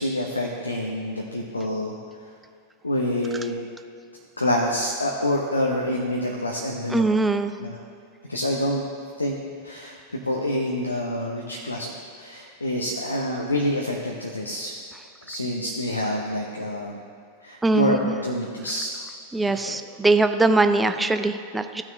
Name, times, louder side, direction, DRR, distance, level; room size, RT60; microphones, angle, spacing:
voice 1, 0.0-2.0 2.8-3.6 4.4-7.1 7.6-7.8 8.3-8.8 9.2-9.4 9.6-10.0 10.2-11.9 12.2-14.7 15.3-17.0 17.4-18.9 19.5-19.7, left 1 dB, 80° left, 0 dB, 0.8 m, -27 dB
voice 2, 6.9-7.5 17.6-18.2 19.3-21.8, right 2 dB, 10° right, 8 dB, 0.5 m, -21 dB
15.5 x 6.1 x 3.2 m, 2.2 s
figure-of-eight pair, 90°, 0 cm